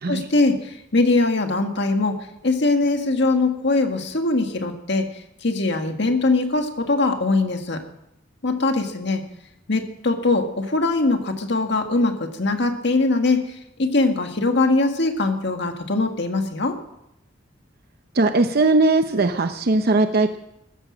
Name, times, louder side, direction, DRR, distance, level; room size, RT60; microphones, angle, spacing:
voice 1, 0.1-5.1 5.4-7.8 8.4-9.2 9.7-16.8, left 3 dB, 65° left, 5 dB, 1.8 m, -21 dB
voice 2, 18.1-20.4, right 2 dB, 55° right, 8 dB, 0.7 m, -19 dB
15.0 x 13.5 x 6.3 m, 0.82 s
head